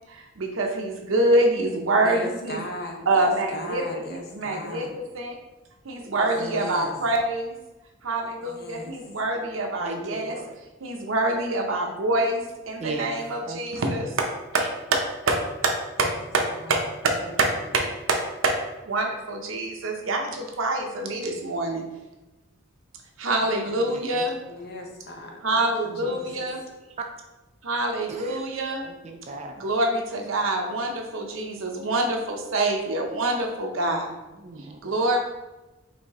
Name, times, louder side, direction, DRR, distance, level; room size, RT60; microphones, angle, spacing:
voice 1, 0.1-2.6 3.1-3.8 4.3-5.4 5.8-7.6 8.0-10.4 10.8-14.3 14.5-17.5 17.7-17.8 18.1-18.2 18.4-18.5 18.9-21.8 23.2-24.4 25.4-26.6 27.6-28.8 29.6-34.1 34.8-35.2, right 2 dB, 75° right, 2 dB, 0.7 m, -26 dB
voice 2, 2.0-5.0 6.0-6.9 8.4-9.0 16.5-16.8 24.5-25.7 26.0-26.5, left 1 dB, 50° left, 2 dB, 0.7 m, -38 dB
voice 3, 6.4-7.0 9.1-9.2 9.8-10.6 12.8-13.2 13.5-13.6 17.2-17.4 23.7-24.6 25.9-26.1 28.1-28.5 28.8-29.6 34.3-34.8, right 2 dB, 30° right, 4 dB, 0.3 m, -38 dB
5.1 x 2.7 x 3.5 m, 1.1 s
head